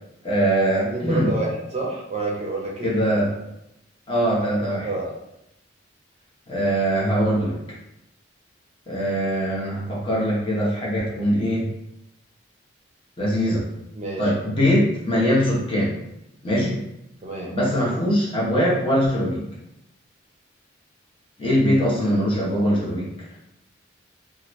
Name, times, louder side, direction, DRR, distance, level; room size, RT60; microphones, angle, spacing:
voice 1, 0.2-1.3 2.8-3.3 4.1-4.9 6.5-7.6 8.9-11.7 13.2-13.6 14.2-15.9 16.4-16.8 17.5-19.4 21.4-23.1, equal, 25° left, -6 dB, 0.9 m, -22 dB
voice 2, 0.8-3.0 4.8-5.0 13.9-14.3 17.2-17.5, right 2 dB, 35° right, -2 dB, 0.6 m, -28 dB
2.8 x 2.5 x 3.1 m, 0.85 s
head